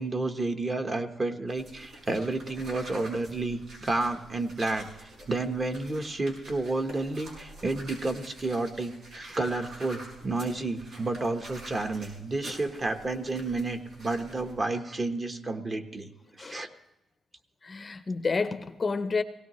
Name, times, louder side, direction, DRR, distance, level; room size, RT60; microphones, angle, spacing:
voice 1, 0.0-16.1 16.4-16.7, right 2 dB, 30° right, 6 dB, 1.1 m, -31 dB
sound 1, 1.5-14.6, right 1 dB, 85° right, 5.7 m, -47 dB
voice 2, 17.6-19.2, left 4 dB, 30° left, 10 dB, 0.6 m, -30 dB
18.5 x 17.5 x 3.1 m, 0.99 s
cardioid pair, 120°, 0 cm